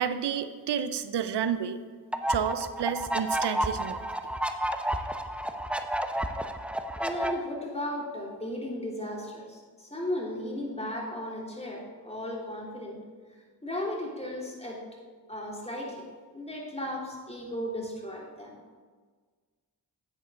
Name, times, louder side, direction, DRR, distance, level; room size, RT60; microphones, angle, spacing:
voice 1, 0.0-1.8 2.3-4.0, right 8 dB, 75° right, 12 dB, 0.6 m, -30 dB
sound 1, 2.1-7.3, right 1 dB, 5° right, 0.7 m, -31 dB
voice 2, 7.0-13.0 13.6-14.8 15.3-16.1 16.3-18.6, left 1 dB, 15° left, -3 dB, 3.1 m, -35 dB
9.5 x 9.1 x 3.7 m, 1.5 s
cardioid pair, 45°, 42 cm